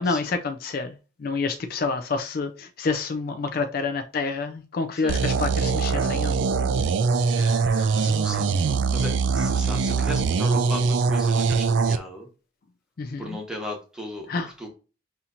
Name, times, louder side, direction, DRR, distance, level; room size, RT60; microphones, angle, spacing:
voice 1, 0.0-8.0 13.0-13.4 14.3-14.5, left 4 dB, 45° left, 0.4 m, -29 dB
sound 1, 5.1-12.0, right 4 dB, 60° right, 0.3 m, -22 dB
voice 2, 7.9-8.5 8.9-12.3 13.2-14.3 14.6-14.7, equal, 5° right, 1.0 m, -36 dB
5.6 x 2.8 x 2.4 m
head